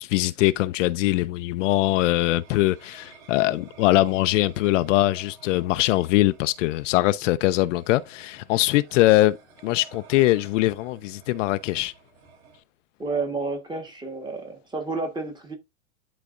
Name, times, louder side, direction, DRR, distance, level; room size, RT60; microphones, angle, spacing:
voice 1, 0.0-9.4 9.6-11.9, left 17 dB, 65° left, 0.5 m, -22 dB
sound 1, 1.9-12.6, right 4 dB, 50° right, 4.3 m, -51 dB
voice 2, 13.0-15.6, right 3 dB, 10° right, 1.3 m, -31 dB
11.5 x 4.1 x 2.5 m
supercardioid pair, 155°, 41 cm